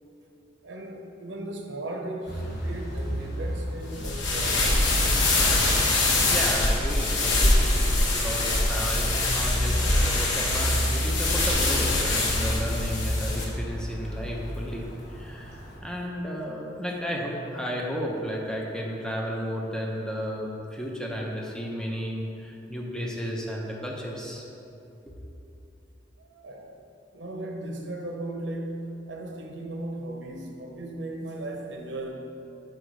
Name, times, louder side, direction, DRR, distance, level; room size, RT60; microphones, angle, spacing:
voice 1, 0.6-4.8 26.2-26.7 27.1-32.1, right 1 dB, 75° right, 2 dB, 0.7 m, -36 dB
sound 1, 2.3-15.8, equal, 60° left, 1.0 m, -33 dB
sound 2, 3.9-13.5, left 2 dB, 85° left, 1.0 m, -24 dB
voice 2, 6.3-24.4 25.0-25.1, equal, 5° left, -2 dB, 0.6 m, -33 dB
sound 3, 11.2-12.6 14.3-14.4, right 2 dB, 45° right, 1.4 m, -44 dB
4.6 x 4.4 x 5.1 m, 2.7 s
head